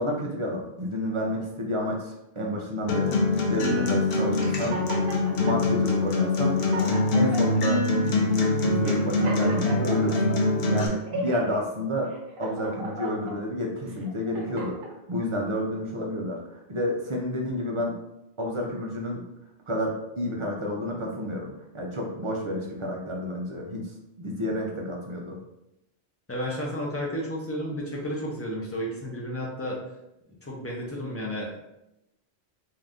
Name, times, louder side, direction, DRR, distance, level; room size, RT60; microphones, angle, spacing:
voice 1, 0.0-3.2 3.5-4.8 5.4-6.6 7.1-10.4 10.7-12.1 12.4-18.0 18.4-19.2 19.7-25.4, left 1 dB, 45° right, -1 dB, 0.4 m, -30 dB
Acoustic guitar, 2.9-10.9, left 2 dB, 65° left, 0.8 m, -24 dB
sound 1, 4.4-5.6 6.2-6.3 6.6-7.6 8.2-8.4 8.8-10.4 10.9-11.6 12.1-13.4 13.9-14.9, right 1 dB, 60° right, 0.8 m, -36 dB
voice 2, 26.3-29.8 30.4-31.6, equal, 20° left, -3 dB, 0.5 m, -32 dB
2.7 x 2.4 x 3.4 m, 0.87 s
omnidirectional pair, 1.1 m